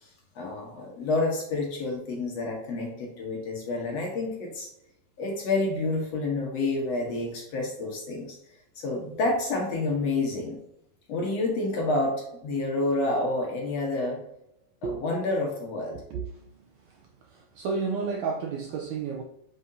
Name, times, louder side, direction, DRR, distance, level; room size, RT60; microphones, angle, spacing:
voice 1, 0.0-4.7 5.2-8.4 8.8-10.6 11.1-14.2 14.8-16.0, left 2 dB, 60° left, 0 dB, 2.0 m, -29 dB
voice 2, 17.3-19.2, right 5 dB, 90° right, 2 dB, 1.6 m, -31 dB
7.7 x 5.6 x 2.7 m, 0.81 s
omnidirectional pair, 4.0 m